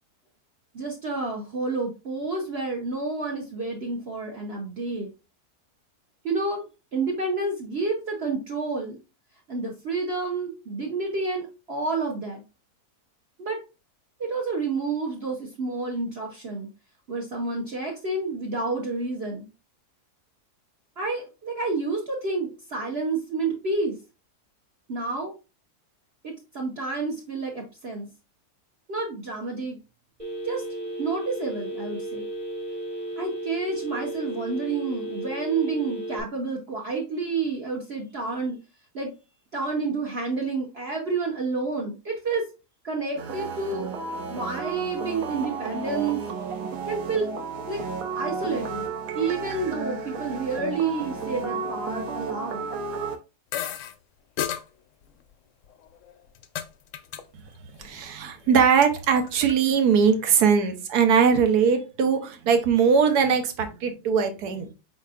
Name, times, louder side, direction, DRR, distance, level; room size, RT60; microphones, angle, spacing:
voice 1, 0.7-5.1 6.2-9.0 9.5-12.4 13.4-13.6 14.2-16.7 17.1-19.5 21.0-24.0 24.9-25.3 26.2-28.1 28.9-29.8 30.4-30.6 31.0-32.3 33.2-38.6 38.9-39.1 39.5-42.5 42.8-43.9 44.3-46.2 46.8-47.3 47.7-47.8 48.1-48.9 49.1-52.6, right 3 dB, 50° right, -1 dB, 1.0 m, -29 dB
Telephone, 30.2-36.2, right 1 dB, 20° right, 1.5 m, -34 dB
sound 1, 43.2-53.2, right 4 dB, 65° right, 1.1 m, -33 dB
sound 2, 53.5-53.9 54.4-54.6 55.6-56.7 56.9-57.2 57.5-57.9 58.3-59.5, left 10 dB, 70° left, 0.8 m, -33 dB
voice 2, 57.8-64.7, right 6 dB, 85° right, 6 dB, 1.3 m, -21 dB
5.1 x 4.2 x 2.4 m, 0.30 s
omnidirectional pair, 1.7 m